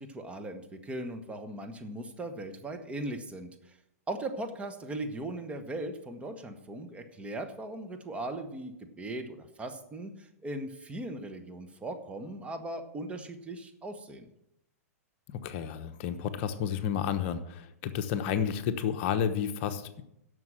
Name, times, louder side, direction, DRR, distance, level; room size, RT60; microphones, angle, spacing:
voice 1, 0.0-3.7 4.1-14.3, right 1 dB, 15° right, 5 dB, 1.5 m, -39 dB
voice 2, 15.4-20.0, left 8 dB, 50° left, 9 dB, 1.0 m, -31 dB
11.0 x 6.7 x 7.6 m, 0.80 s
hypercardioid pair, 125°, 8 cm